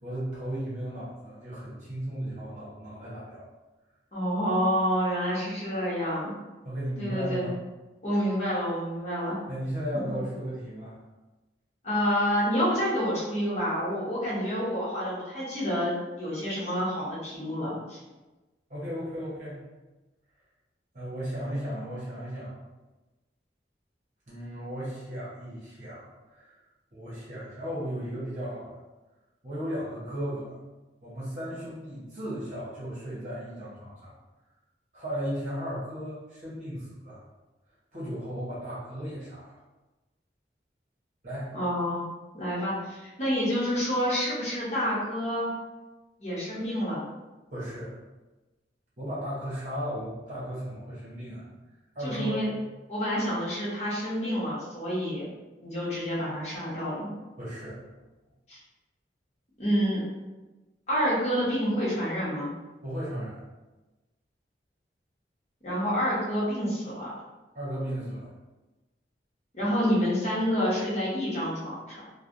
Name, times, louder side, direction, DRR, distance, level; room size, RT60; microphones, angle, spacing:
voice 1, 0.0-3.5 6.6-7.5 9.5-11.0 18.7-19.6 20.9-22.6 24.3-26.5 26.9-28.8 29.4-30.5 31.0-34.1 34.9-37.2 37.9-39.5 41.2-41.5 47.5-47.9 49.0-51.4 51.9-52.3 57.4-58.0 62.8-63.4 67.5-68.3, equal, 45° right, -8 dB, 0.9 m, -35 dB
voice 2, 4.1-6.3 7.0-7.5 8.0-9.4 9.9-10.2 11.8-18.0 41.5-42.0 42.3-45.5 46.2-47.0 52.0-52.5 52.9-55.2 55.6-57.1 58.5-58.6 59.6-60.0 60.9-62.5 65.6-67.1 69.5-72.0, equal, 40° left, -8 dB, 1.0 m, -28 dB
3.2 x 2.2 x 2.5 m, 1.1 s
head